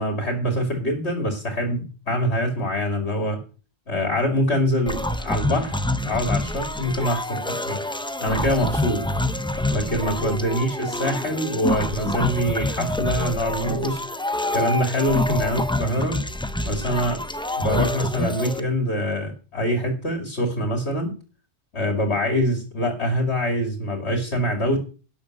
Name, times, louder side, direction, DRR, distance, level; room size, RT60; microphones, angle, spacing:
voice 1, 0.0-3.4 3.9-7.8 8.2-9.0 9.7-14.0 14.5-16.2 16.6-17.2 17.6-21.1 21.7-24.8, equal, 65° left, 3 dB, 2.7 m, -24 dB
sound 1, 4.9-18.6, left 1 dB, 5° left, 0.4 m, -27 dB
12.0 x 6.7 x 6.4 m, 0.35 s
omnidirectional pair, 1.2 m